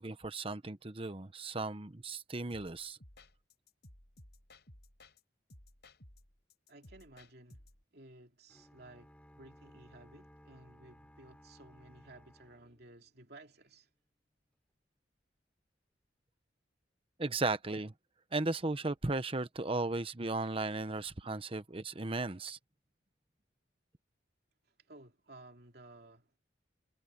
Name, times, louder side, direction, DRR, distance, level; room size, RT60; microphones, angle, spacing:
voice 1, 0.0-3.0 17.2-17.9 18.3-22.6, right 2 dB, 30° right, 1.0 m, -36 dB
sound 1, 2.5-5.2 5.5-7.8, left 1 dB, 60° left, 6.2 m, -58 dB
voice 2, 6.7-7.6 7.9-13.9 24.9-26.3, right 2 dB, 60° right, 2.7 m, -56 dB
sound 2, 8.5-13.5, equal, 5° left, 5.3 m, -60 dB
head